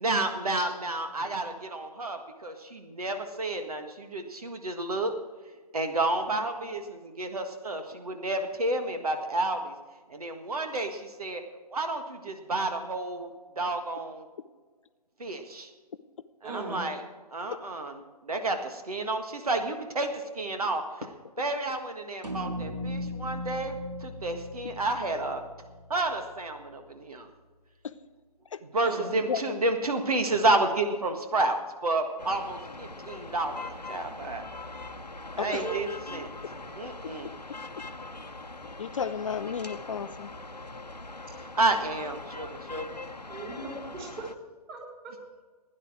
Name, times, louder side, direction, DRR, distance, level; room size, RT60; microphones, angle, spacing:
voice 1, 0.0-5.1 5.7-9.7 10.1-11.4 11.7-13.3 13.6-14.2 15.2-15.7 16.4-17.0 17.3-17.9 18.2-20.1 20.3-20.8 21.4-23.8 24.0-25.4 25.9-27.3 28.7-34.4 35.4-36.3 36.8-37.3 41.6-43.0, right 2 dB, 65° right, 6 dB, 1.6 m, -30 dB
voice 2, 16.4-16.8 28.8-29.1 35.5-35.8 36.1-36.2 43.3-44.3 44.7-45.2, right 3 dB, 20° right, -1 dB, 3.8 m, -37 dB
sound 1, 22.2-26.7, left 1 dB, 85° right, 2.2 m, -38 dB
voice 3, 29.3-29.6 35.4-35.6 38.6-40.3, left 6 dB, 50° left, 12 dB, 0.6 m, -33 dB
sound 2, 32.2-44.4, left 2 dB, 90° left, 1.0 m, -42 dB
16.5 x 10.0 x 4.8 m, 1.4 s
figure-of-eight pair, 135°, 21 cm